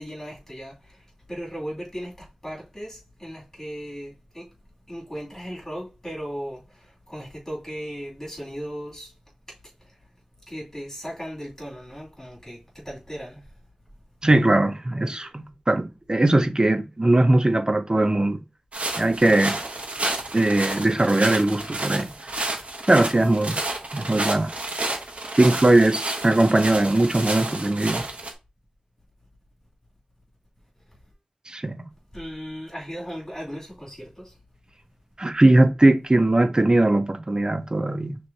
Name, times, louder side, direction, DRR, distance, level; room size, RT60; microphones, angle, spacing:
voice 1, 0.0-4.5 4.9-9.1 10.5-13.4 32.1-34.3, equal, 20° left, 2.5 m, -37 dB
voice 2, 14.2-18.4 19.0-19.6 20.3-22.1 22.9-23.6 23.9-24.5 25.4-28.0 31.5-31.9 35.2-38.2, right 2 dB, 30° right, 0.6 m, -20 dB
sound 1, 18.7-28.3, right 2 dB, 60° right, 1.1 m, -31 dB
6.1 x 3.1 x 2.7 m
wide cardioid pair, 75°, 2 cm